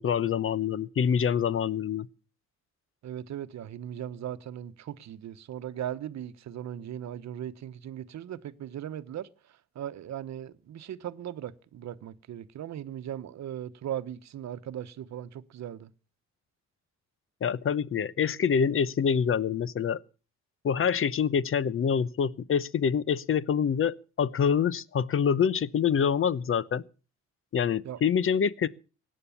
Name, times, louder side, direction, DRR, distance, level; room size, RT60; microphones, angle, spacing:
voice 1, 0.0-2.1 17.4-20.0 20.6-26.8 27.5-28.7, left 7 dB, 45° left, 0.8 m, -26 dB
voice 2, 3.0-9.3 9.7-15.9 27.8-28.0, right 10 dB, 65° right, 1.0 m, -38 dB
17.0 x 10.0 x 7.0 m
cardioid pair, 90°, 30 cm